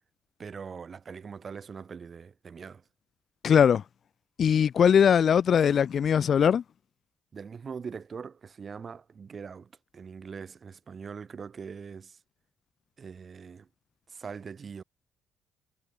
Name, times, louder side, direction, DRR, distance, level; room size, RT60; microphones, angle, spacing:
voice 1, 0.4-2.8 7.3-12.2 13.0-13.7 14.1-14.8, right 6 dB, 45° right, 5.9 m, -42 dB
voice 2, 3.4-3.8 4.4-6.6, left 8 dB, 55° left, 0.3 m, -21 dB
cardioid pair, 90°, 0 cm